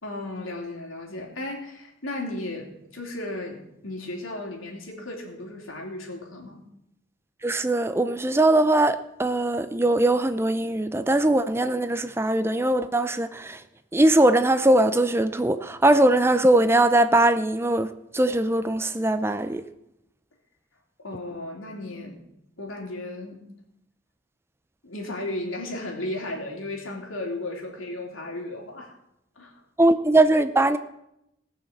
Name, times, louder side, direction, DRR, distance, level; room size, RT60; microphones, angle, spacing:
voice 1, 0.0-6.6 21.0-22.2 22.6-23.4 24.8-28.9 29.4-29.6, left 2 dB, 85° left, 3.4 m, -35 dB
voice 2, 7.4-13.6 13.9-19.6 29.8-30.8, right 1 dB, 10° right, 0.5 m, -21 dB
18.5 x 6.5 x 7.4 m
head